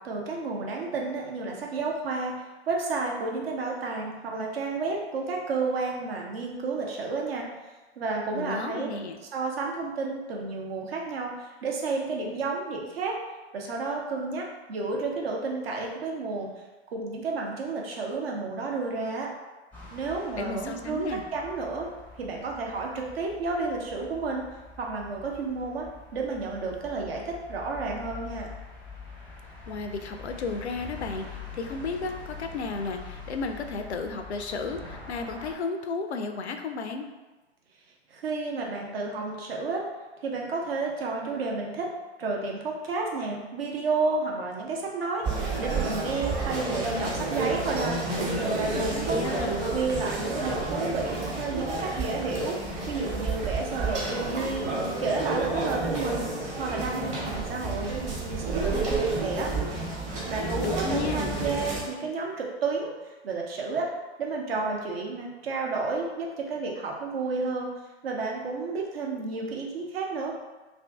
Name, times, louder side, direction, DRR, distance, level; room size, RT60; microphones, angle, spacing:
voice 1, 0.0-2.3 2.7-7.4 8.0-8.9 9.3-13.1 13.5-16.5 16.9-19.3 19.9-21.9 22.2-24.5 24.8-25.9 26.1-28.5 38.1-39.8 40.2-41.9 42.2-48.0 48.3-52.6 52.9-54.7 55.0-56.3 56.6-59.5 60.3-62.9 63.2-63.9 64.2-67.7 68.0-70.3, right 3 dB, 60° right, 0 dB, 0.8 m, -31 dB
voice 2, 8.3-9.2 20.3-21.2 29.7-31.2 31.5-37.0 48.8-49.7 60.6-61.4, left 4 dB, 80° left, 6 dB, 0.5 m, -33 dB
sound 1, 19.7-35.6, left 4 dB, 5° left, 0.5 m, -45 dB
sound 2, 45.2-61.8, right 2 dB, 20° right, 0.9 m, -30 dB
2.6 x 2.6 x 3.3 m, 1.2 s
figure-of-eight pair, 110°, 33 cm